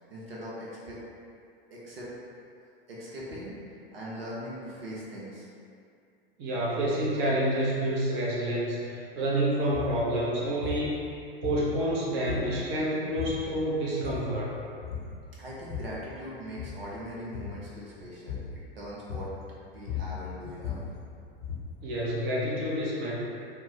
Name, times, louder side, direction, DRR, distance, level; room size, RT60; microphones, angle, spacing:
voice 1, 0.1-1.0 1.7-2.1 2.9-5.5 15.4-18.4 18.7-19.3 19.7-20.8, equal, 80° right, -7 dB, 0.8 m, -40 dB
voice 2, 6.4-11.1 11.4-14.5 21.8-23.1, right 1 dB, 40° right, -6 dB, 0.8 m, -28 dB
sound 1, 9.7-10.0 10.6-10.9 11.4-11.9 12.3-12.7 13.2-13.5 13.8-14.4 14.8-15.2 15.5-16.0 16.5-16.9 17.3-17.6 18.3-18.6 19.1-19.5 19.7-21.8, left 7 dB, 75° left, 0.7 m, -37 dB
3.3 x 2.1 x 3.2 m, 2.4 s
hypercardioid pair, 90°, 29 cm